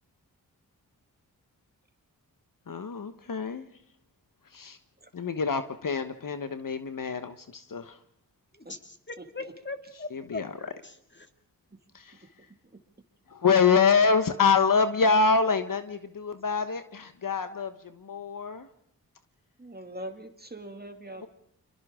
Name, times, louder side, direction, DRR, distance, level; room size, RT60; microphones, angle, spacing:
voice 1, 2.7-3.7 4.5-4.8 5.1-8.0 10.1-10.6 11.9-12.2 13.3-18.7 21.2-21.3, left 5 dB, 55° left, 10 dB, 1.2 m, -26 dB
voice 2, 8.7-11.3, left 3 dB, 30° left, 6 dB, 2.3 m, -40 dB
voice 3, 19.6-21.3, right 1 dB, 25° right, 5 dB, 2.4 m, -42 dB
29.5 x 23.5 x 3.7 m, 0.73 s
cardioid pair, 40°, 39 cm